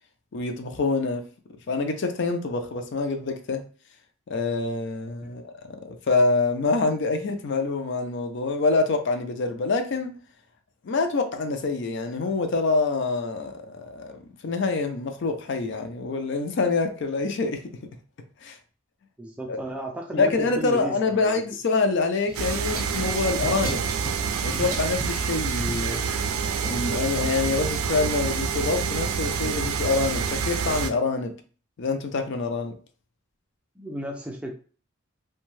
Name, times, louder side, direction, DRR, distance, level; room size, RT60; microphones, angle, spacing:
voice 1, 0.3-1.3 1.7-3.6 4.3-10.2 10.8-17.8 18.4-18.6 19.5-19.6 20.1-23.8 24.4-26.0 26.6-31.3 31.8-32.7, left 3 dB, 55° left, 0.4 m, -26 dB
voice 2, 19.2-21.4 33.8-34.5, right 1 dB, 5° right, 0.4 m, -34 dB
sound 1, 22.3-27.0, right 1 dB, 45° right, 0.7 m, -38 dB
sound 2, 22.3-30.9, right 6 dB, 80° right, 0.4 m, -27 dB
2.6 x 2.2 x 3.1 m
head